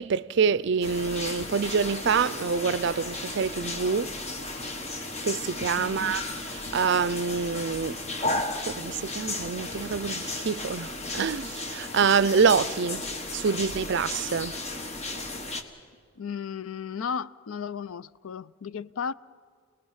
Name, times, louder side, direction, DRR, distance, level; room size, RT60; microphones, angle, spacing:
voice 1, 0.0-4.1 5.2-6.2 6.6-13.0 13.3-14.5, right 5 dB, 60° right, 0.5 m, -26 dB
sound 1, 0.8-15.6, left 2 dB, 30° left, 1.4 m, -34 dB
voice 2, 5.8-6.2 16.2-19.1, left 6 dB, 85° left, 0.5 m, -34 dB
28.0 x 19.5 x 5.6 m
head